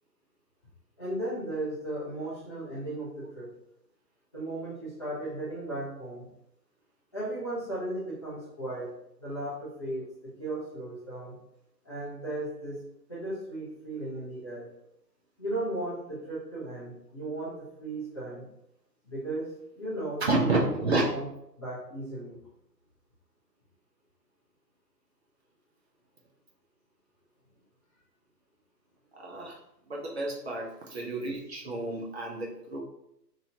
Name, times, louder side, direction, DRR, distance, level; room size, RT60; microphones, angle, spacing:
voice 1, 1.0-3.5 4.3-6.3 7.1-8.9 9.2-11.4 11.8-12.8 13.1-14.7 15.4-18.5 19.0-19.5 19.7-20.8 21.1-21.2 21.6-22.4, right 1 dB, 20° left, -10 dB, 0.5 m, -36 dB
voice 2, 20.2-21.0 29.1-29.6 29.9-32.8, right 2 dB, 40° right, -2 dB, 0.6 m, -30 dB
2.9 x 2.7 x 2.7 m, 0.80 s
figure-of-eight pair, 130°, 50 cm